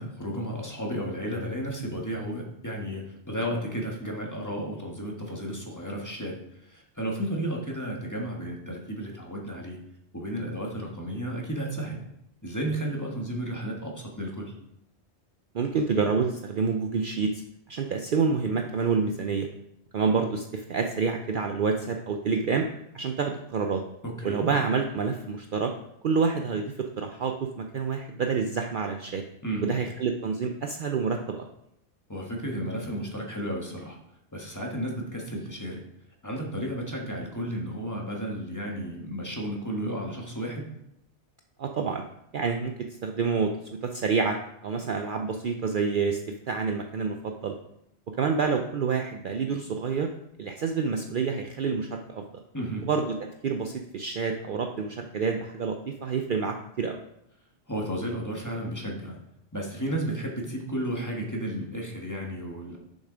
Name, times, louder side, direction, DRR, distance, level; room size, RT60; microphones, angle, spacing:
voice 1, 0.0-6.3 6.7-9.8 10.1-12.0 12.4-14.5 24.0-24.5 29.4-29.7 32.1-34.0 34.3-35.8 36.2-40.7 52.5-52.8 57.7-59.2 59.5-62.8, right 1 dB, 15° left, -1 dB, 1.5 m, -33 dB
voice 2, 15.5-17.4 17.7-19.5 19.9-22.6 22.9-23.8 24.2-25.7 26.0-29.2 29.6-31.5 41.6-42.0 42.3-42.7 43.0-43.5 43.8-44.4 44.6-46.2 46.5-47.6 48.2-50.1 50.4-52.2 52.8-53.2 53.4-57.0, right 5 dB, 55° right, 4 dB, 0.7 m, -28 dB
6.7 x 6.5 x 5.0 m, 0.80 s
omnidirectional pair, 1.2 m